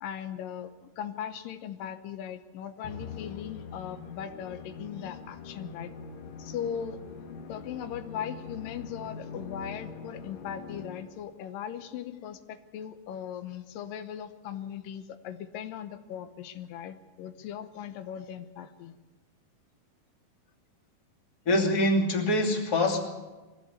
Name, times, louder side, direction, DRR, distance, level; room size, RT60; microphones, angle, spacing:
voice 1, 0.0-5.9 6.4-7.0 7.5-19.0, left 9 dB, 90° left, 9 dB, 2.7 m, -39 dB
Musical instrument, 2.8-11.3, left 5 dB, 60° left, 2.3 m, -43 dB
voice 2, 21.4-23.0, left 1 dB, 30° left, 0 dB, 2.8 m, -24 dB
22.0 x 16.0 x 8.1 m, 1.2 s
omnidirectional pair, 3.9 m